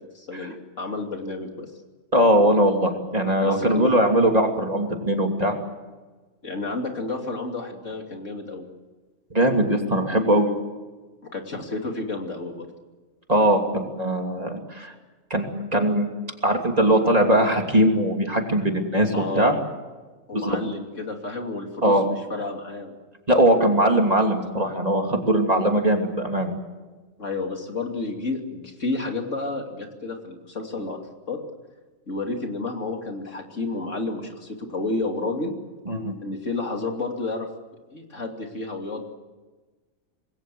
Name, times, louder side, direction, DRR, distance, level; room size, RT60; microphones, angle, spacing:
voice 1, 0.1-1.7 3.4-3.9 6.4-8.7 11.3-12.7 19.1-19.6 20.3-22.9 27.2-31.0 31.3-31.4 32.1-35.5 36.2-37.5 37.9-39.0, left 3 dB, 70° left, 3 dB, 3.2 m, -31 dB
voice 2, 2.1-5.6 9.3-10.5 13.3-14.9 15.3-16.1 16.4-19.5 20.3-20.6 21.8-22.0 23.3-26.5 35.9-36.1, right 1 dB, 30° right, 3 dB, 3.0 m, -20 dB
26.5 x 20.5 x 7.8 m, 1.3 s
omnidirectional pair, 1.3 m